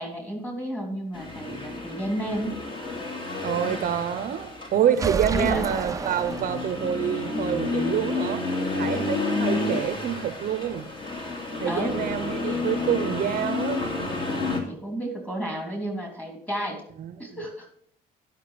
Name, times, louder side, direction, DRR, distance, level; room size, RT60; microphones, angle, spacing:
voice 1, 0.0-2.5 5.0-5.7 11.7-12.0 14.5-16.8 17.2-17.7, right 1 dB, 10° left, 2 dB, 3.2 m, -31 dB
Accelerating revving vroom, 1.1-14.6, left 3 dB, 30° left, 2.4 m, -30 dB
voice 2, 3.4-8.4 8.8-10.8 11.6-13.8 17.0-17.2, right 9 dB, 55° right, 12 dB, 0.7 m, -27 dB
sound 1, 4.9-7.0, right 5 dB, 20° right, 0.5 m, -30 dB
11.5 x 5.7 x 5.8 m, 0.64 s
cardioid pair, 110°, 17 cm